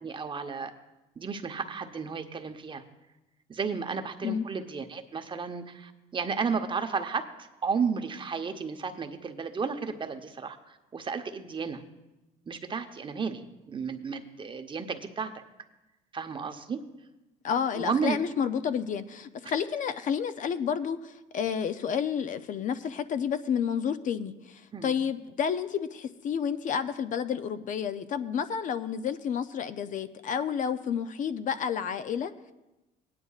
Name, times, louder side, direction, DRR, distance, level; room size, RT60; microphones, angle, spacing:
voice 1, 0.0-0.7 1.2-2.8 3.5-11.8 12.5-15.4 16.1-16.8 17.8-18.2 24.7-24.9, right 5 dB, 30° right, 7 dB, 0.8 m, -33 dB
voice 2, 17.4-32.5, left 7 dB, 50° left, 12 dB, 0.5 m, -30 dB
18.0 x 9.9 x 2.4 m, 1.0 s
cardioid pair, 110°, 17 cm